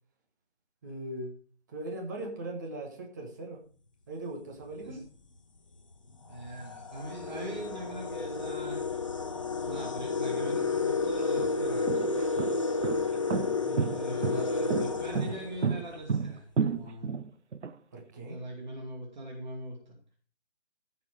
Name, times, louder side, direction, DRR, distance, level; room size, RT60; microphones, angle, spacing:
voice 1, 0.8-1.4 1.7-3.6 4.1-5.0 13.6-14.3 17.9-18.4, right 1 dB, 15° right, 1 dB, 1.3 m, -40 dB
sound 1, 4.6-4.9 5.7-5.8 6.3-16.0, left 4 dB, 30° left, 0.7 m, -31 dB
voice 2, 6.3-8.9 9.6-12.2 13.9-17.1 18.2-20.0, right 1 dB, 40° right, 0 dB, 2.7 m, -41 dB
sound 2, 10.4-10.5 11.2-17.7, right 6 dB, 80° right, 1.0 m, -31 dB
14.5 x 7.0 x 4.8 m, 0.40 s
hypercardioid pair, 170°, 35 cm